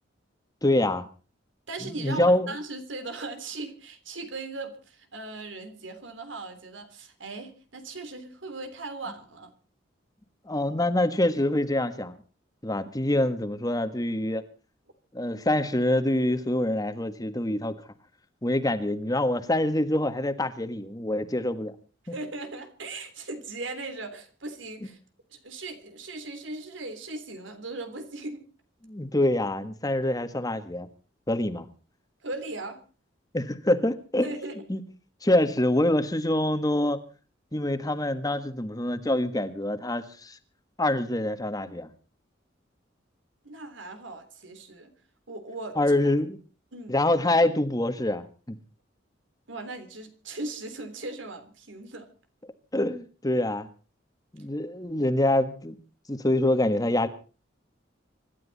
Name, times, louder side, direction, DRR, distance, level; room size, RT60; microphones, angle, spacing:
voice 1, 0.6-1.1 1.8-2.5 10.5-12.2 12.6-14.4 15.1-17.7 18.4-21.7 28.8-30.9 31.3-31.7 33.3-34.3 34.7-34.8 35.2-37.0 37.5-40.4 40.8-41.9 45.8-46.4 46.9-48.6 52.7-53.7 54.3-55.7 56.1-57.1, left 1 dB, 20° left, 10 dB, 1.5 m, -25 dB
voice 2, 1.7-9.5 22.1-25.0 25.3-28.4 32.2-32.8 34.2-34.6 43.4-44.9 45.3-45.8 46.7-47.0 49.5-52.1, right 2 dB, 90° right, 8 dB, 3.4 m, -38 dB
26.0 x 12.5 x 4.1 m, 0.37 s
head